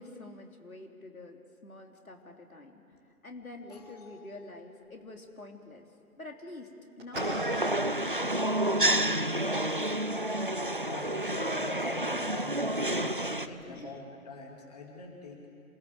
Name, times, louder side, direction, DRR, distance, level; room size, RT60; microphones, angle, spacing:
voice 1, 0.0-2.8 3.2-5.9 6.2-6.7 7.0-7.5 7.8-9.0 9.3-10.0 13.7-14.0, left 2 dB, 70° left, 2 dB, 3.5 m, -47 dB
voice 2, 3.7-4.5 10.5-15.5, left 3 dB, 25° left, 0 dB, 2.6 m, -45 dB
sound 1, 4.8-13.8, equal, 10° right, 3.8 m, -52 dB
sound 2, 7.1-13.5, right 1 dB, 35° right, 0.5 m, -29 dB
27.5 x 17.5 x 7.9 m, 2.5 s
figure-of-eight pair, 155°, 45 cm